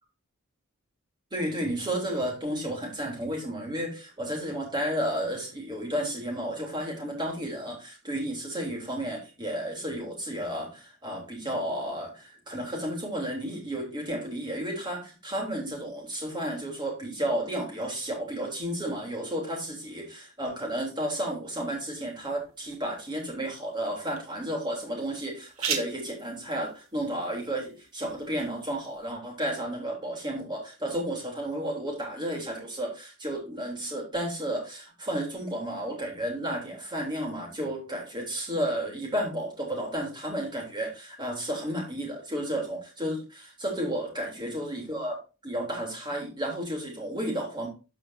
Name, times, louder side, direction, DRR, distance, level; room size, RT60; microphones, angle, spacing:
voice 1, 1.3-45.2 45.4-47.7, right 1 dB, 20° right, 0 dB, 3.2 m, -32 dB
sound 1, 21.6-29.1, right 7 dB, 75° right, 1.5 m, -41 dB
13.5 x 5.0 x 2.7 m, 0.30 s
head